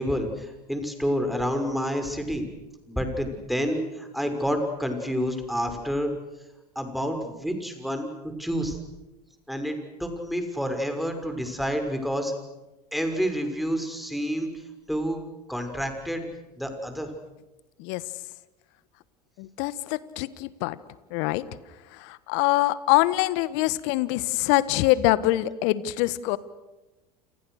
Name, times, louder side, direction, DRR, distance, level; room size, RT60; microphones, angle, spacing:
voice 1, 0.0-2.5 2.9-6.1 6.7-8.1 8.4-8.8 9.5-12.3 12.9-14.5 14.9-15.2 15.5-16.3 16.6-17.1, equal, ahead, 5 dB, 6.2 m, -28 dB
voice 2, 19.4-20.8 21.1-21.5 21.9-26.4, left 17 dB, 60° left, 16 dB, 1.6 m, -24 dB
29.5 x 28.5 x 6.6 m, 1.0 s
hypercardioid pair, 80°, 21 cm